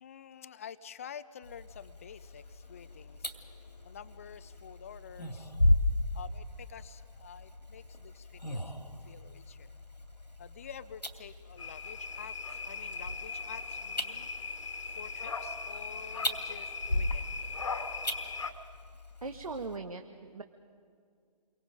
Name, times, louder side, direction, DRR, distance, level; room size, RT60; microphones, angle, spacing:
voice 1, 0.0-5.5 6.1-9.7 10.4-14.3 14.9-17.3, left 8 dB, 20° left, 15 dB, 0.5 m, -49 dB
sound 1, 1.4-19.8, left 1 dB, 90° left, 2.6 m, -36 dB
sound 2, 11.6-18.5, left 4 dB, 50° left, 1.6 m, -39 dB
voice 2, 19.2-20.4, right 3 dB, 60° right, 6 dB, 1.5 m, -39 dB
29.5 x 24.0 x 5.1 m, 2.2 s
figure-of-eight pair, 145°, 21 cm